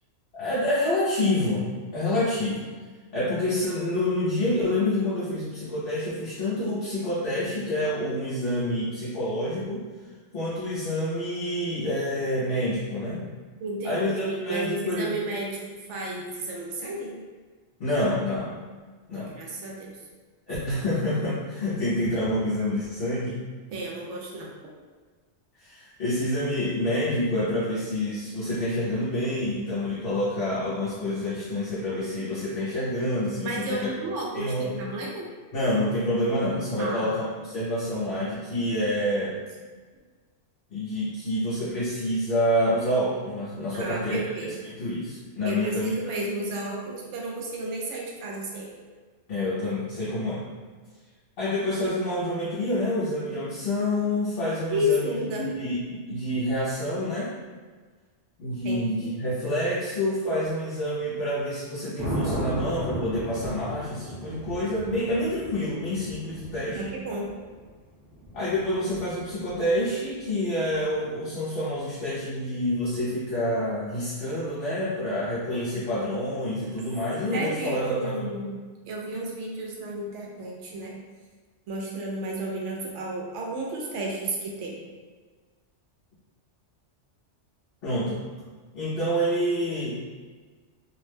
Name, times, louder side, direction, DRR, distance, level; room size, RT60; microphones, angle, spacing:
voice 1, 0.3-2.6 3.1-9.8 10.3-13.3 13.8-15.2 17.8-18.5 19.1-19.3 20.5-23.4 25.6-33.9 34.3-34.7 35.5-39.4 40.7-45.9 49.3-50.5 51.4-57.3 58.4-66.8 68.3-78.3 87.8-88.2 88.7-90.1, left 1 dB, 60° left, -9 dB, 0.7 m, -27 dB
voice 2, 13.6-17.1 19.1-19.9 23.7-24.5 33.4-35.2 36.8-37.2 43.7-44.5 45.4-48.7 54.7-55.4 58.6-59.2 66.7-67.3 77.3-78.5 78.9-81.0 81.7-84.8, right 1 dB, 80° right, -2 dB, 0.9 m, -32 dB
Thunder, 62.0-70.0 72.7-73.1, right 1 dB, 20° right, 0.6 m, -36 dB
2.6 x 2.0 x 3.2 m, 1.4 s
omnidirectional pair, 1.2 m